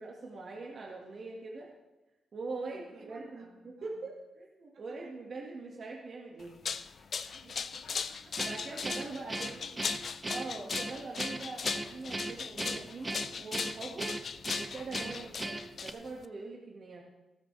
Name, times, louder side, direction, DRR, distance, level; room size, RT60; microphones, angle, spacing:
voice 1, 0.0-1.7 2.3-6.6 8.4-9.6 10.3-14.2 14.6-17.0, right 3 dB, 50° right, -2 dB, 1.9 m, -42 dB
voice 2, 2.5-4.1 4.7-5.1 7.0-8.5 9.3-10.0 15.1-15.3, right 3 dB, 75° right, -1 dB, 2.9 m, -59 dB
sound 1, 6.4-16.2, left 6 dB, 55° left, 0.6 m, -38 dB
Guitar, 8.4-15.9, right 2 dB, 20° right, 0.9 m, -38 dB
16.0 x 13.5 x 3.4 m, 1.0 s
cardioid pair, 110°, 0 cm